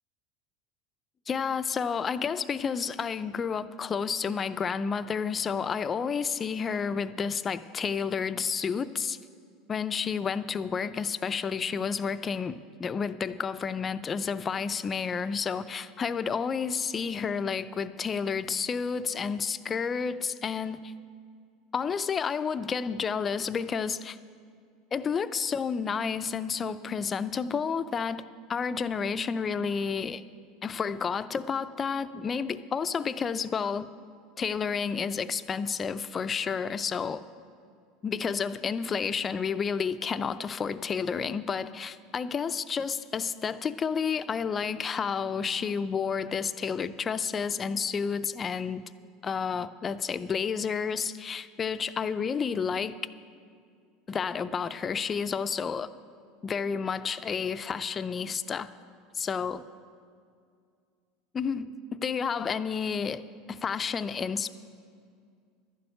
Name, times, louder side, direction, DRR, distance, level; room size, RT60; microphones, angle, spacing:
voice 1, 1.3-9.2 9.7-20.9 21.7-24.2 24.9-30.2 30.6-33.9 34.4-37.2 38.0-48.8 49.2-52.9 54.1-55.9 56.4-58.7 59.2-59.6 61.3-63.2 63.5-64.5, left 6 dB, 25° left, 13 dB, 0.4 m, -30 dB
12.0 x 6.9 x 9.1 m, 2.2 s
supercardioid pair, 120°, 0 cm